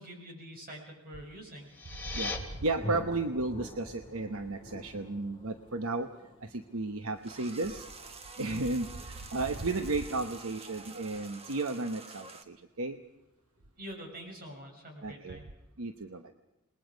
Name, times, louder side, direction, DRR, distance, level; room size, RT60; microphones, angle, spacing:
voice 1, 0.0-1.7 13.8-15.4, equal, 45° right, 2 dB, 6.7 m, -45 dB
Thunder, 1.5-13.0, left 1 dB, 25° left, 5.3 m, -48 dB
sound 1, 1.6-2.4, left 4 dB, 10° left, 2.7 m, -37 dB
voice 2, 2.6-6.1 6.4-7.9 8.4-13.0 15.0-15.4 15.8-16.3, right 2 dB, 70° right, 7 dB, 1.0 m, -33 dB
sound 2, 7.2-12.4, right 4 dB, 30° right, 1.3 m, -48 dB
28.0 x 20.5 x 5.2 m, 0.97 s
head